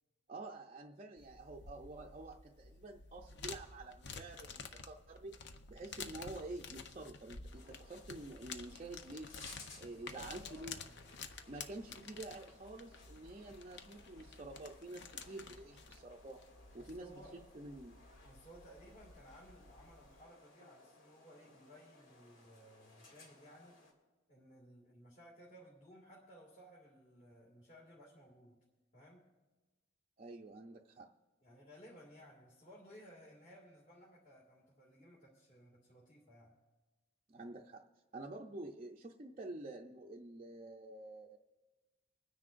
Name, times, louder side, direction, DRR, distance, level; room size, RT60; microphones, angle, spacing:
voice 1, 0.3-5.4 5.7-9.3 9.8-10.8 11.5-16.4 16.7-18.0 30.2-31.1 37.3-37.8 38.1-41.4, right 2 dB, 35° right, -2 dB, 0.6 m, -49 dB
sound 1, 1.2-20.2, left 5 dB, 60° left, 0.7 m, -52 dB
sound 2, 7.5-23.9, left 3 dB, 85° left, 2.3 m, -61 dB
voice 2, 9.8-11.2 16.7-17.4 18.2-23.8 24.3-28.6 28.9-29.3 31.4-36.5, equal, 40° left, -5 dB, 2.1 m, -59 dB
25.0 x 9.7 x 2.5 m, 1.2 s
head